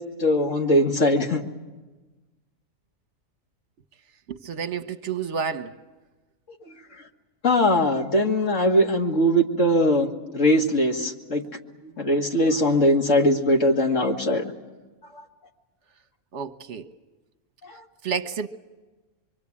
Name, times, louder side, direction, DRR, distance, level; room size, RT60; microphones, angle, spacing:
voice 1, 0.0-1.4 7.4-11.4 12.0-14.5 15.1-15.2 17.6-17.8, left 1 dB, 60° left, 2 dB, 2.2 m, -21 dB
voice 2, 4.3-5.7 16.3-16.9 18.0-18.5, right 6 dB, 55° right, 11 dB, 1.3 m, -30 dB
25.5 x 24.0 x 8.6 m, 1.2 s
omnidirectional pair, 1.5 m